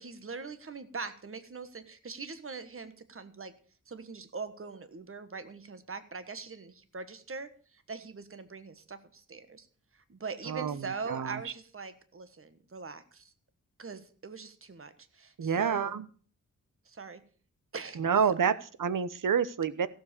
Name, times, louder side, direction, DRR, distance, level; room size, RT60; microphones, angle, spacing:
voice 1, 0.0-3.5 3.9-9.7 9.9-13.3 13.8-15.9 16.8-17.2 17.7-18.0, right 4 dB, 45° right, 11 dB, 1.4 m, -42 dB
voice 2, 10.5-11.4 15.4-16.0 18.0-19.9, right 7 dB, 80° right, 14 dB, 1.0 m, -28 dB
15.5 x 7.5 x 6.8 m, 0.43 s
wide cardioid pair, 130°, 32 cm